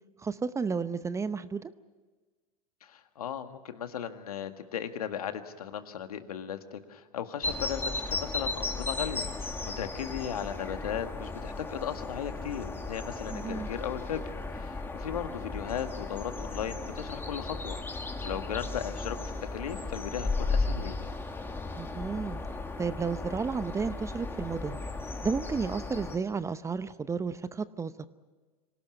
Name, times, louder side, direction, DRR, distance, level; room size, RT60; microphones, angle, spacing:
voice 1, 0.2-1.7 13.3-13.7 21.8-22.4 22.8-24.8 25.2-28.1, right 5 dB, 15° right, 14 dB, 0.8 m, -32 dB
voice 2, 2.8-9.5 9.8-17.8 18.2-19.2 19.5-21.0, left 9 dB, 80° left, 8 dB, 1.8 m, -36 dB
sound 1, 7.4-26.2, left 3 dB, 10° left, 2.1 m, -35 dB
26.0 x 18.0 x 9.4 m, 1.3 s
hypercardioid pair, 105°, 19 cm